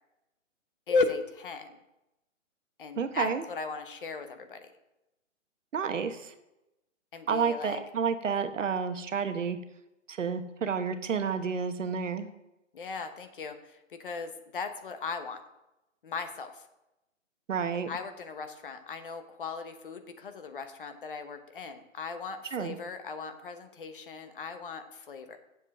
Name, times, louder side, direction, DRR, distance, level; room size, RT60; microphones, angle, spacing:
voice 1, 0.9-1.8 2.8-4.7 7.1-7.8 12.7-15.4 16.0-16.7 17.9-25.4, left 4 dB, 45° left, 8 dB, 1.0 m, -36 dB
voice 2, 3.0-3.4 5.7-6.3 7.3-9.6 10.1-12.3 17.5-17.9 22.5-22.8, right 6 dB, 70° right, 9 dB, 1.1 m, -30 dB
7.4 x 5.4 x 7.5 m, 0.91 s
hypercardioid pair, 160°, 39 cm